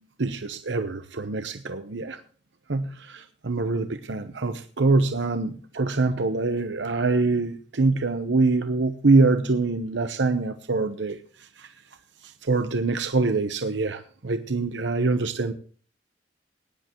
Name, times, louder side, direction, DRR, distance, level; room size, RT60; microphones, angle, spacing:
voice 1, 0.2-2.2 2.7-11.2 11.6-11.7 12.2-15.5, right 3 dB, 75° right, 9 dB, 0.9 m, -24 dB
18.5 x 10.5 x 3.0 m, 0.42 s
head